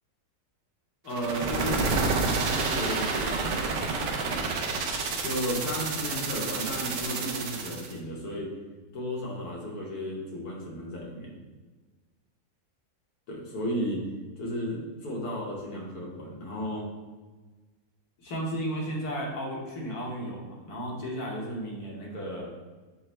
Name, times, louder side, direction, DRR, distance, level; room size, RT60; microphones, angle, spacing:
voice 1, 1.0-3.6 5.2-8.5 8.9-11.3 13.3-14.0 14.4-16.9 18.2-22.5, equal, 75° left, -2 dB, 1.4 m, -34 dB
sound 1, 1.1-7.9, right 4 dB, 70° right, 0.7 m, -29 dB
5.4 x 2.0 x 4.2 m, 1.3 s
omnidirectional pair, 1.7 m